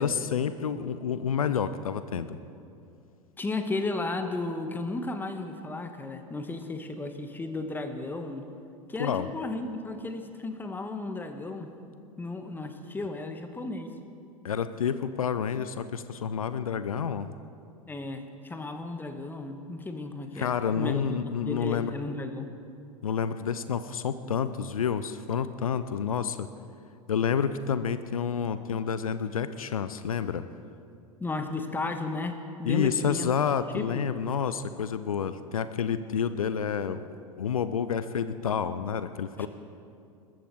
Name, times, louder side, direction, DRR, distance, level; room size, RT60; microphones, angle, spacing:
voice 1, 0.0-2.4 9.0-9.3 14.4-17.3 20.4-21.9 23.0-26.5 27.1-30.5 32.6-39.5, left 7 dB, 70° left, 13 dB, 0.6 m, -29 dB
voice 2, 3.4-8.4 8.9-11.7 12.2-13.9 17.9-22.5 31.2-33.3 33.7-34.1 39.4-39.5, left 2 dB, 10° left, 8 dB, 1.3 m, -34 dB
21.5 x 13.5 x 4.6 m, 2.6 s
figure-of-eight pair, 80°, 19 cm